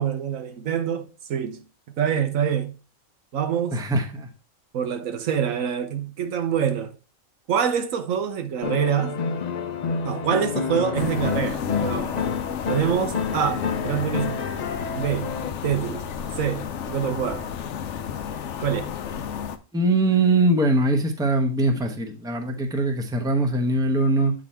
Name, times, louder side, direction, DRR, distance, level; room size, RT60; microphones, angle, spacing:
voice 1, 0.0-1.6 2.0-2.7 3.3-3.8 4.7-6.9 7.5-9.2 10.0-12.2 12.7-14.4 14.9-15.3 15.6-16.0 16.4-17.5 18.6-18.9, right 8 dB, 75° right, 1.2 m, -25 dB
voice 2, 3.7-4.3 19.7-24.3, right 2 dB, 5° right, 0.8 m, -22 dB
sound 1, 8.6-15.5, left 5 dB, 50° left, 0.5 m, -29 dB
sound 2, 10.9-19.6, left 8 dB, 65° left, 0.9 m, -31 dB
8.3 x 3.9 x 4.3 m
omnidirectional pair, 1.4 m